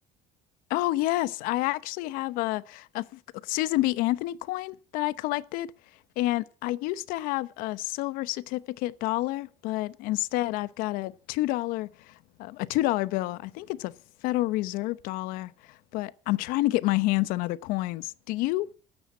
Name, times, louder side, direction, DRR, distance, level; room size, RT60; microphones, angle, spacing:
voice 1, 0.7-5.7 6.2-13.9 14.2-18.7, left 18 dB, 85° left, 1.0 m, -29 dB
17.0 x 13.5 x 5.6 m
cardioid pair, 135°, 14 cm